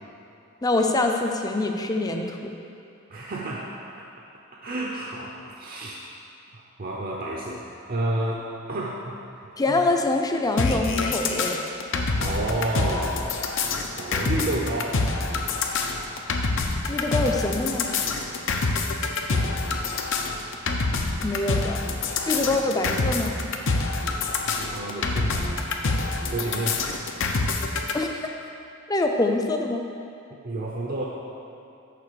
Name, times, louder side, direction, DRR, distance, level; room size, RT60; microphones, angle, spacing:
voice 1, 0.6-2.5 9.6-11.6 16.9-17.9 21.2-21.8 22.3-23.4 27.9-28.1 28.9-29.9, left 2 dB, 20° left, 3 dB, 0.5 m, -24 dB
voice 2, 3.1-3.7 4.6-6.1 6.5-9.8 11.9-13.2 14.0-15.0 19.3-19.6 24.5-25.7 26.3-26.9 30.4-31.0, right 1 dB, 45° right, -3 dB, 0.7 m, -31 dB
sound 1, 10.6-27.9, left 3 dB, 65° left, 0.7 m, -26 dB
6.7 x 5.4 x 6.8 m, 2.6 s
head